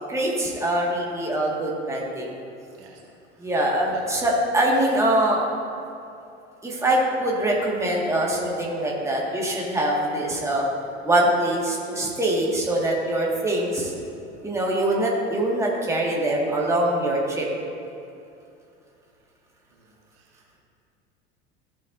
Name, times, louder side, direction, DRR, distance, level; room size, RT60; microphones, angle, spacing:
voice 1, 0.1-2.3 3.4-5.5 6.6-10.7 11.0-13.9 14.4-17.5, right 1 dB, 10° right, -3 dB, 1.9 m, -23 dB
voice 2, 19.7-20.6, right 7 dB, 60° right, -2 dB, 1.9 m, -52 dB
16.0 x 7.1 x 2.7 m, 2.6 s
figure-of-eight pair, 75°, 33 cm